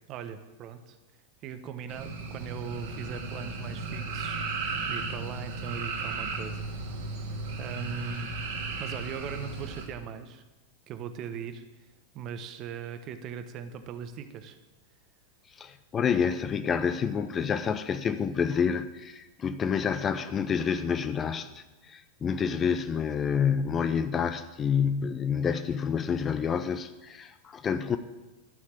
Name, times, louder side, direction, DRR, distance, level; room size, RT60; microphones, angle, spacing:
voice 1, 0.1-1.0 1.4-6.7 7.6-8.3 8.8-10.4 10.9-11.9 12.1-14.6, right 7 dB, 35° right, 9 dB, 1.0 m, -39 dB
sound 1, 1.9-9.8, right 3 dB, 55° right, 2.2 m, -35 dB
voice 2, 15.6-28.0, left 7 dB, 25° left, 11 dB, 0.6 m, -28 dB
12.5 x 6.4 x 7.3 m, 1.1 s
figure-of-eight pair, 90°, 0 cm